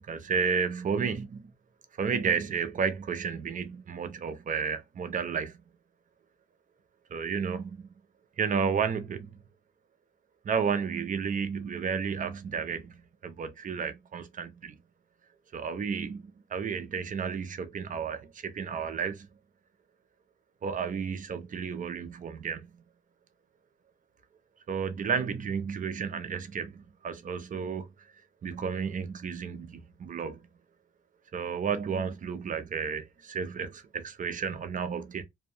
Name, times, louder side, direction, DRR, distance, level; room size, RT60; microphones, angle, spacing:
voice 1, 0.0-1.5 2.0-5.6 7.1-8.0 8.4-9.4 10.4-14.8 15.5-19.3 20.6-22.8 24.7-27.9 28.4-30.5 31.3-35.2, right 6 dB, 40° right, 0.6 m, -32 dB
2.7 x 2.2 x 2.5 m
cardioid pair, 90°, 20 cm